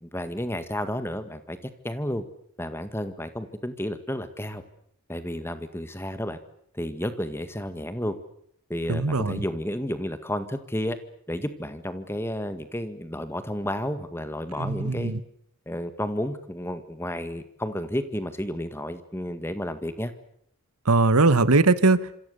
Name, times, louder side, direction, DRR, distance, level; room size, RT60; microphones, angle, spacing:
voice 1, 0.0-1.6 1.8-2.2 2.6-4.6 5.1-6.4 6.7-8.2 8.7-11.0 11.3-15.1 15.7-20.1, left 1 dB, 10° left, 10 dB, 1.8 m, -31 dB
voice 2, 8.9-9.4 14.6-15.2 20.8-22.1, right 3 dB, 85° right, 15 dB, 1.3 m, -20 dB
27.0 x 26.0 x 6.9 m, 0.68 s
head